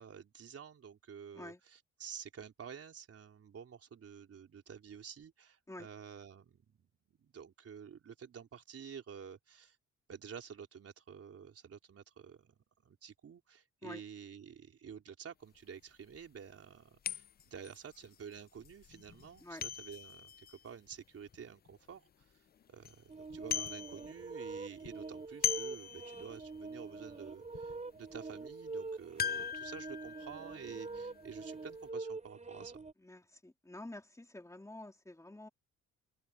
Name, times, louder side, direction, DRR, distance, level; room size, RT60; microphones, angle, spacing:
voice 1, 0.0-9.8 10.1-22.0 22.7-32.7, right 7 dB, 50° right, 4.1 m, -50 dB
sound 1, 15.6-15.7 16.1-16.2 17.0-21.7 22.2-22.3 22.6-23.0 23.3-24.4 24.6-26.6 27.0-27.1 27.5-27.7 29.2-31.6 31.8-31.9, left 8 dB, 30° left, 0.5 m, -41 dB
sound 2, 23.1-32.9, right 3 dB, 25° right, 5.9 m, -45 dB
voice 2, 33.0-35.5, left 1 dB, 10° left, 3.1 m, -49 dB
open air
cardioid pair, 90°, 30 cm